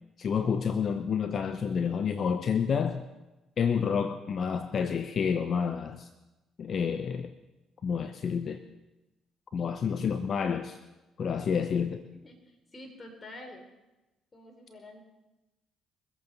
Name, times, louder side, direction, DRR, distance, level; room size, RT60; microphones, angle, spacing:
voice 1, 0.2-3.0 3.6-6.1 6.6-7.3 7.8-8.6 9.5-10.8 11.2-12.0, left 6 dB, 55° left, 10 dB, 0.8 m, -29 dB
voice 2, 12.2-13.7 14.3-15.0, left 1 dB, 30° left, 3 dB, 3.6 m, -47 dB
23.0 x 8.3 x 5.4 m, 1.0 s
hypercardioid pair, 55°, 0 cm